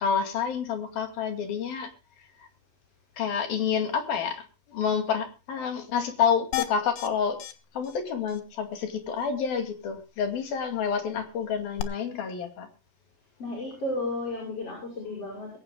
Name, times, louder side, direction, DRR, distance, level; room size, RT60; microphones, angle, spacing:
voice 1, 0.0-1.9 2.4-2.5 3.2-7.4 7.7-12.7, left 7 dB, 60° left, 6 dB, 3.9 m, -28 dB
sound 1, 6.5-7.1 7.4-7.5 7.8-8.0 8.3-8.4 11.8-11.9, left 14 dB, 90° left, 3.7 m, -31 dB
voice 2, 13.4-15.6, left 2 dB, 35° left, -1 dB, 6.6 m, -33 dB
21.5 x 17.5 x 2.2 m, 0.31 s
omnidirectional pair, 5.1 m